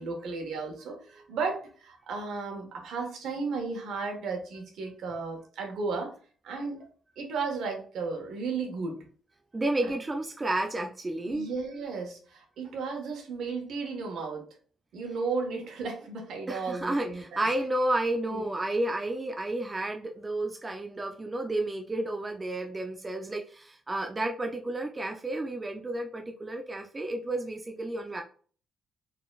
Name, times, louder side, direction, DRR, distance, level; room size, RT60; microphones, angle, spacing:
voice 1, 0.0-6.1 6.4-6.8 7.2-9.0 9.8-9.9 11.3-14.4 14.9-17.4 18.3-18.4, right 4 dB, 75° right, 2 dB, 1.5 m, -34 dB
voice 2, 9.5-11.5 16.5-28.2, right 1 dB, 20° right, 3 dB, 0.6 m, -31 dB
4.2 x 4.0 x 2.4 m, 0.42 s
cardioid pair, 90°, 0 cm